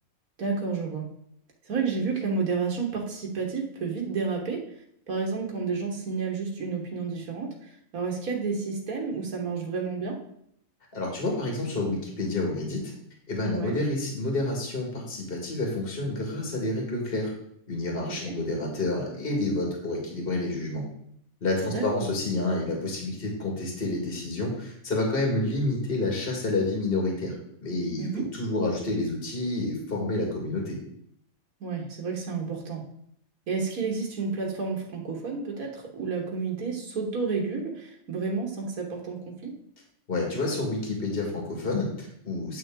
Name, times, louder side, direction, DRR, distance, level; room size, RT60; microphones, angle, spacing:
voice 1, 0.4-1.1 1.7-4.6 5.1-10.2 13.5-13.8 18.1-18.3 21.7-22.1 28.0-28.3 31.6-32.8 33.5-39.6, right 5 dB, 85° right, -1 dB, 1.8 m, -31 dB
voice 2, 10.9-12.9 13.3-17.3 17.7-20.8 21.4-27.3 27.6-30.8 40.1-42.6, left 2 dB, 40° left, 0 dB, 2.0 m, -29 dB
9.1 x 5.9 x 3.7 m, 0.71 s
omnidirectional pair, 1.5 m